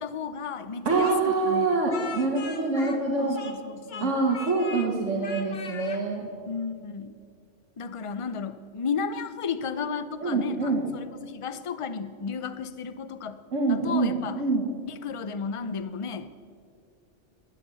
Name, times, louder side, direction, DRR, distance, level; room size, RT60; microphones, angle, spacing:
voice 1, 0.0-1.8 3.2-4.2 5.0-5.6 6.5-7.1 7.8-13.4 13.7-14.4 14.8-16.3, left 6 dB, 35° left, 12 dB, 0.6 m, -34 dB
voice 2, 0.9-3.4 4.0-6.3 10.2-10.9 13.5-14.7, right 3 dB, 80° right, -1 dB, 1.8 m, -25 dB
Speech, 1.0-3.6 3.9-4.9 5.2-6.0, left 5 dB, 55° left, 1.3 m, -40 dB
19.5 x 9.4 x 6.9 m, 2.2 s
omnidirectional pair, 1.3 m